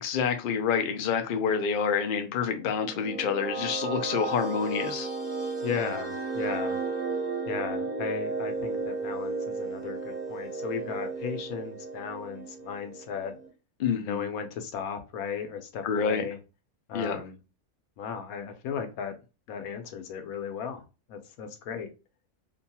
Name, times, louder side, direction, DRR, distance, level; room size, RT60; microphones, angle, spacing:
voice 1, 0.0-5.1 13.8-14.3 15.8-16.2 16.9-17.2, left 6 dB, 70° left, 0.5 m, -28 dB
sound 1, 2.6-13.5, right 3 dB, 5° right, 0.9 m, -34 dB
voice 2, 5.6-6.8 7.5-13.3 14.0-16.4 16.9-17.4 18.0-19.1 19.5-20.8 21.1-21.9, left 7 dB, 90° left, 1.1 m, -35 dB
2.8 x 2.2 x 2.7 m
omnidirectional pair, 1.5 m